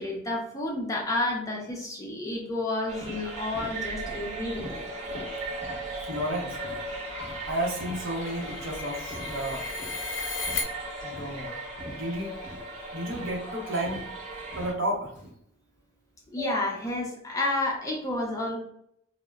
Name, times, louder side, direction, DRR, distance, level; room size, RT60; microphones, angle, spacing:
voice 1, 0.0-4.8 16.3-18.6, left 2 dB, 15° left, -1 dB, 0.4 m, -30 dB
sound 1, 2.9-14.7, right 2 dB, 35° right, 0.6 m, -38 dB
sound 2, 3.0-3.2 3.5-3.7 4.1-4.2 4.6-4.8 5.1-5.3 5.6-5.8 6.1-6.3 6.6-6.8 7.2-7.4 7.8-8.0 8.4-8.6 9.1-9.3 9.8-10.0 10.5-10.7 11.1-11.3 11.8-12.0 12.4-12.6 13.1-13.3 13.8-14.1 14.5-14.7 15.1-15.3, equal, 5° right, 0.9 m, -43 dB
sound 3, 6.0-10.6, left 4 dB, 65° left, 0.5 m, -37 dB
voice 2, 6.0-6.6 7.5-9.7 11.0-11.5 11.9-12.3 12.9-14.1 14.6-15.1, right 1 dB, 65° right, -1 dB, 0.7 m, -32 dB
2.0 x 2.0 x 3.4 m, 0.69 s
head